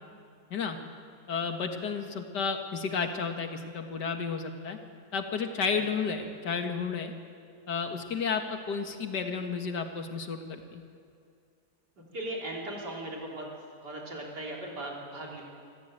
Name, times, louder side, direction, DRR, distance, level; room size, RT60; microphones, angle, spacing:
voice 1, 1.3-4.8 5.1-7.1 7.7-10.8, left 5 dB, 90° left, 5 dB, 2.3 m, -32 dB
voice 2, 12.1-13.5 13.8-15.4, right 1 dB, 85° right, -2 dB, 4.2 m, -38 dB
25.5 x 14.5 x 8.9 m, 2.3 s
omnidirectional pair, 1.8 m